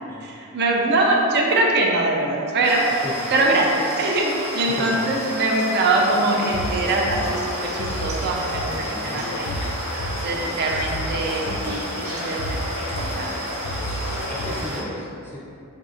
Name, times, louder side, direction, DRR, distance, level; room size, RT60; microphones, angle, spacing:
voice 1, 0.2-2.8 3.3-9.5 10.0-13.4, right 2 dB, 50° right, -1 dB, 0.5 m, -23 dB
sound 1, 2.6-14.8, equal, 30° right, 0.8 m, -31 dB
voice 2, 4.7-5.0 8.9-9.2 11.4-11.8 14.3-15.4, left 1 dB, 10° left, -6 dB, 0.5 m, -34 dB
sound 2, 5.9-14.7, left 1 dB, 70° left, 0.3 m, -31 dB
4.9 x 2.6 x 2.4 m, 2.6 s
head